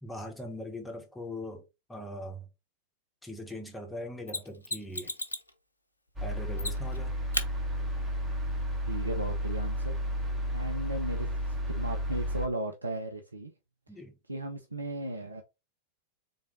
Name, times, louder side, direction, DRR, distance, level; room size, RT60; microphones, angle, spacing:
voice 1, 0.0-2.4 3.2-5.1 6.2-7.1 13.9-14.2, left 1 dB, 5° left, 1.2 m, -41 dB
Mechanisms, 4.3-5.5 6.6-7.0 7.3-7.5 10.2-10.3, left 2 dB, 80° left, 0.7 m, -34 dB
sound 1, 6.2-12.5, equal, 15° right, 1.4 m, -32 dB
voice 2, 8.9-10.2 10.5-11.3 11.7-13.5 14.3-15.4, right 1 dB, 80° right, 0.6 m, -36 dB
4.0 x 3.3 x 3.5 m
figure-of-eight pair, 90°, 0 cm